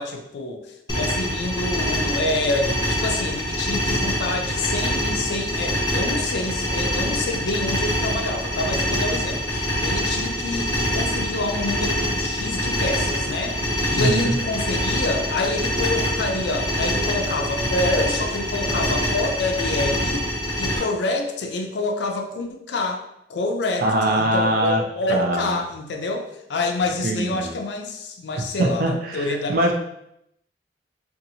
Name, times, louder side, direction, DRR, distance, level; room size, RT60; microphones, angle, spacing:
voice 1, 0.0-13.6 13.9-20.3 20.6-23.0 23.3-23.9 24.1-29.5, left 2 dB, 70° left, 4 dB, 0.4 m, -27 dB
sound 1, 0.9-20.8, equal, 25° left, 0.8 m, -25 dB
voice 2, 14.0-14.4 23.8-24.8 25.1-25.6 27.0-27.5 28.4-29.7, right 1 dB, 50° right, 2 dB, 0.4 m, -22 dB
2.6 x 2.4 x 2.7 m, 0.78 s
head